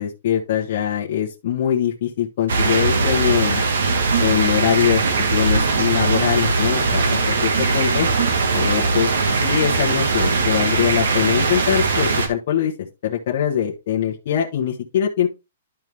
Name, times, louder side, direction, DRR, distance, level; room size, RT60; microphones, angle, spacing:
voice 1, 0.0-3.6 4.2-5.0 5.3-8.1 8.5-15.3, left 10 dB, 40° left, -2 dB, 1.1 m, -22 dB
sound 1, 2.5-12.3, right 4 dB, 80° right, 1.7 m, -20 dB
11.0 x 4.6 x 3.4 m, 0.26 s
hypercardioid pair, 175°, 0 cm